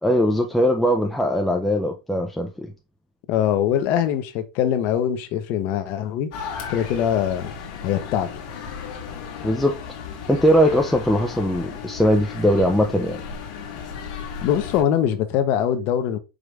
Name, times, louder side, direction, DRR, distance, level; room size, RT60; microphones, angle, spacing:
voice 1, 0.0-2.7 9.4-9.7 10.3-13.2, equal, ahead, 0.4 m, -20 dB
voice 2, 3.3-6.3 6.7-7.5 7.8-8.3 14.4-16.2, left 10 dB, 45° left, 0.7 m, -22 dB
sound 1, 6.3-14.8, left 6 dB, 65° left, 1.4 m, -35 dB
4.9 x 2.5 x 3.2 m
supercardioid pair, 145°, 4 cm